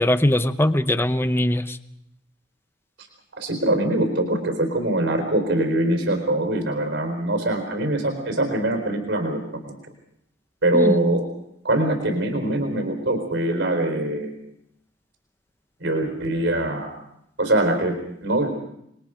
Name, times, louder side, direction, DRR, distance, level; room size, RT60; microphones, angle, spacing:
voice 1, 0.0-1.8 10.7-11.0, left 1 dB, 10° left, 11 dB, 0.8 m, -21 dB
voice 2, 3.4-9.7 10.6-11.3 11.6-14.3 15.8-16.9 17.4-18.5, right 1 dB, 70° right, 6 dB, 4.3 m, -23 dB
28.5 x 21.5 x 5.1 m, 0.77 s
head